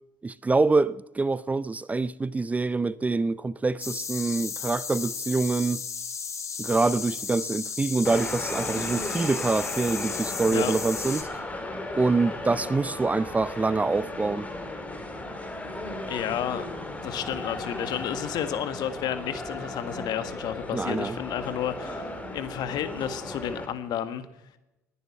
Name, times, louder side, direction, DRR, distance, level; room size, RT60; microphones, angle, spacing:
voice 1, 0.2-5.8 6.6-11.3 12.0-14.5 20.7-21.2, right 3 dB, 15° right, 0.5 m, -25 dB
sound 1, 3.8-11.2, left 6 dB, 35° left, 2.6 m, -34 dB
sound 2, 8.1-23.7, left 2 dB, 15° left, 3.3 m, -36 dB
voice 2, 16.1-16.6 17.0-24.3, left 10 dB, 55° left, 1.7 m, -31 dB
20.5 x 10.5 x 5.9 m
hypercardioid pair, 60°, 8 cm